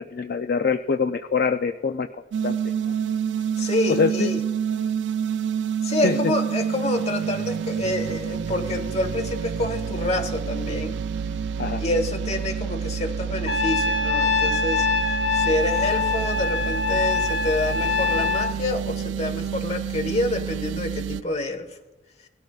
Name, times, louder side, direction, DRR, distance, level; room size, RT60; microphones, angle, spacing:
voice 1, 0.1-2.1 2.4-2.6 2.9-3.0 3.9-4.3 6.0-6.3 11.6-11.8, left 5 dB, 55° left, 8 dB, 0.4 m, -24 dB
sound 1, 2.3-21.2, right 7 dB, 75° right, 0.3 m, -28 dB
voice 2, 3.6-4.4 5.8-11.0 11.8-21.8, left 1 dB, 35° left, 7 dB, 1.2 m, -27 dB
Trumpet, 13.5-18.5, left 4 dB, 75° left, 0.9 m, -24 dB
18.5 x 13.5 x 2.4 m, 1.2 s
head